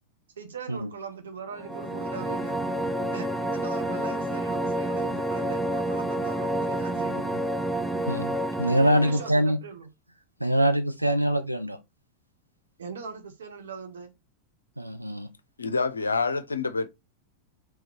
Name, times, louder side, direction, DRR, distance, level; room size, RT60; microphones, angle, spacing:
voice 1, 0.4-2.5 3.1-7.4 8.8-9.9 12.8-14.1, right 5 dB, 65° right, 0.9 m, -40 dB
sound 1, 1.5-9.3, right 1 dB, 5° right, 0.5 m, -29 dB
voice 2, 8.1-9.6 10.4-11.8 14.8-15.3, right 1 dB, 90° right, 0.5 m, -24 dB
voice 3, 15.6-16.9, left 4 dB, 75° left, 0.4 m, -27 dB
3.6 x 3.1 x 3.1 m
figure-of-eight pair, 90°, 0 cm